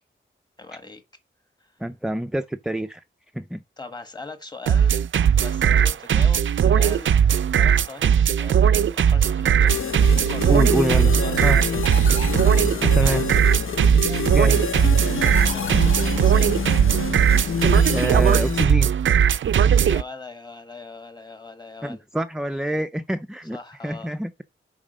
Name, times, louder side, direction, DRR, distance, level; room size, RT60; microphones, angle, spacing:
voice 1, 0.6-1.0 1.6-1.8 3.8-4.9 5.3-7.2 7.6-9.8 10.1-10.7 11.0-12.1 12.9-13.4 15.4-16.5 19.8-22.0 23.5-24.1, left 3 dB, 20° left, 1.3 m, -40 dB
voice 2, 1.8-3.0 3.3-3.6 10.5-11.1 11.4-11.6 12.8-13.2 14.3-14.7 17.9-18.9 21.8-23.6 23.8-24.4, right 1 dB, 5° right, 0.4 m, -26 dB
sound 1, 4.7-20.0, right 8 dB, 70° right, 0.4 m, -18 dB
sound 2, 9.7-18.7, left 6 dB, 85° left, 1.1 m, -27 dB
7.2 x 4.8 x 5.1 m
wide cardioid pair, 175°, 21 cm